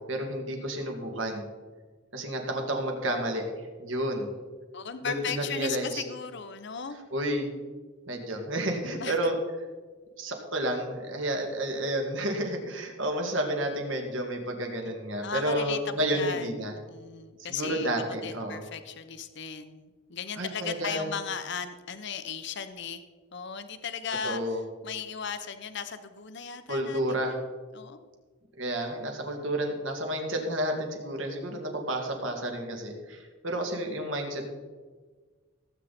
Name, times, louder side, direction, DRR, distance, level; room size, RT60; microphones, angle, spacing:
voice 1, 0.0-1.4 2.1-4.3 5.0-6.0 7.1-7.5 8.1-9.4 10.2-16.7 17.4-18.6 20.4-21.1 24.2-24.6 26.7-27.3 28.6-34.6, right 1 dB, 65° right, 2 dB, 2.3 m, -31 dB
voice 2, 4.7-7.0 9.0-9.1 15.2-15.8 16.1-17.9 18.2-23.0 23.3-27.3 27.7-28.1, left 7 dB, 55° left, 10 dB, 0.7 m, -36 dB
17.5 x 8.4 x 4.3 m, 1.4 s
head